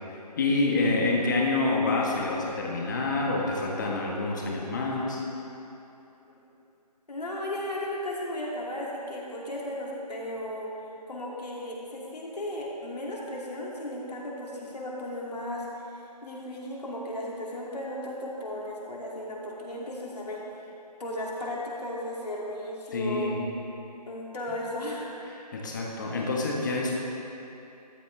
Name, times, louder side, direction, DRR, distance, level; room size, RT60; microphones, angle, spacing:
voice 1, 0.1-5.2 22.9-23.4 24.5-24.6 25.3-27.0, left 3 dB, 30° left, -1 dB, 1.4 m, -27 dB
voice 2, 7.1-10.7 11.1-15.8 16.2-20.4 21.0-23.3 24.1-25.1, left 1 dB, 70° left, -4 dB, 2.6 m, -35 dB
13.5 x 10.5 x 3.4 m, 2.9 s
figure-of-eight pair, 165°, 21 cm